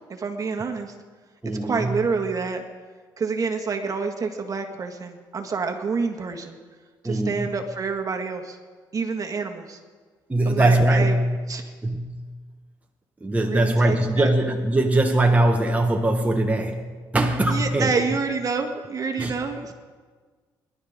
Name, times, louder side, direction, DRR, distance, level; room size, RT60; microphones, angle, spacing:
voice 1, 0.1-0.9 1.6-2.6 3.2-6.6 7.0-8.6 8.9-9.8 10.4-11.2 11.5-11.7 13.4-14.3 17.4-19.7, right 4 dB, 40° right, 4 dB, 1.7 m, -28 dB
voice 2, 1.4-2.0 7.0-7.5 10.3-11.3 11.8-12.3 13.2-16.8 17.1-17.9 19.2-19.3, right 1 dB, 15° right, 2 dB, 1.5 m, -21 dB
23.5 x 11.5 x 3.7 m, 1.5 s
supercardioid pair, 75°, 9 cm